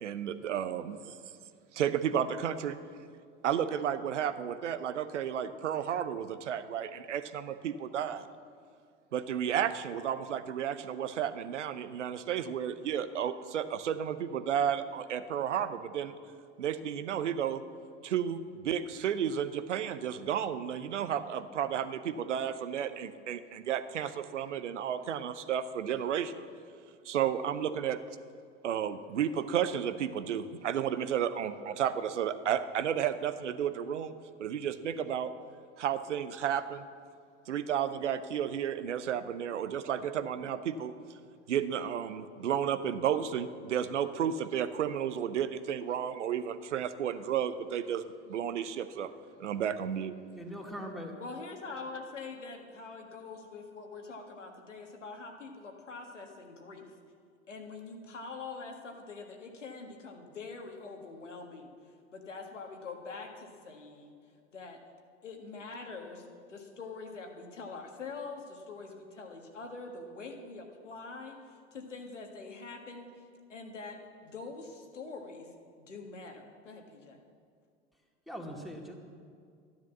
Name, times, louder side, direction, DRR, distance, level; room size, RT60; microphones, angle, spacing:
voice 1, 0.0-1.2 1.7-2.8 3.4-8.3 9.1-16.1 16.6-17.6 18.0-26.5 27.0-28.0 28.6-34.1 34.4-35.3 35.8-36.9 37.5-40.9 41.5-49.1 49.4-50.1, right 9 dB, 75° right, 12 dB, 0.8 m, -32 dB
voice 2, 50.3-51.1 78.3-78.9, equal, ahead, 0 dB, 2.3 m, -41 dB
voice 3, 51.2-56.9 57.5-64.1 64.5-64.8 65.2-73.2 73.5-77.2, left 4 dB, 85° left, 3 dB, 1.7 m, -44 dB
13.0 x 10.5 x 7.2 m, 2.2 s
figure-of-eight pair, 75°, 36 cm